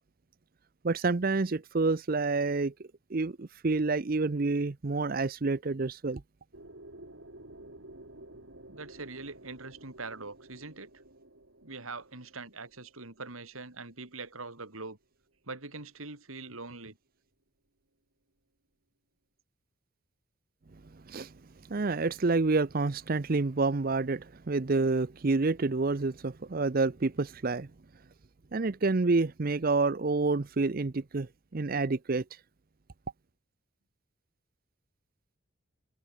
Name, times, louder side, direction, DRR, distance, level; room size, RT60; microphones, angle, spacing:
voice 1, 0.8-2.7 3.1-6.2 21.1-21.3 21.7-27.7 28.5-32.4, right 3 dB, 45° right, 0.6 m, -28 dB
sound 1, 6.5-14.4, right 1 dB, 65° right, 3.7 m, -52 dB
voice 2, 8.7-10.9 11.6-15.0 15.5-17.0, right 3 dB, 85° right, 3.4 m, -43 dB
head